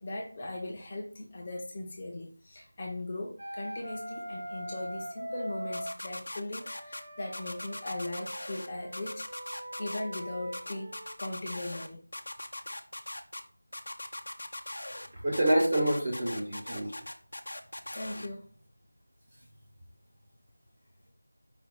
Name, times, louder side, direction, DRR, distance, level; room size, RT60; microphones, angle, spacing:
voice 1, 0.0-10.9 11.2-12.1 17.9-18.5, left 2 dB, 15° left, -2 dB, 0.6 m, -39 dB
Wind instrument woodwind instrument, 3.4-6.0 6.6-11.2, right 1 dB, 55° right, 0.8 m, -42 dB
sound 1, 5.7-7.0 7.3-8.7 8.9-10.2 10.5-11.9 12.1-13.4 13.7-15.1 15.3-18.3, left 1 dB, 70° left, 0.6 m, -40 dB
voice 2, 15.2-17.0, right 1 dB, 20° right, -5 dB, 0.6 m, -27 dB
5.0 x 2.3 x 4.6 m, 0.40 s
figure-of-eight pair, 180°, 0 cm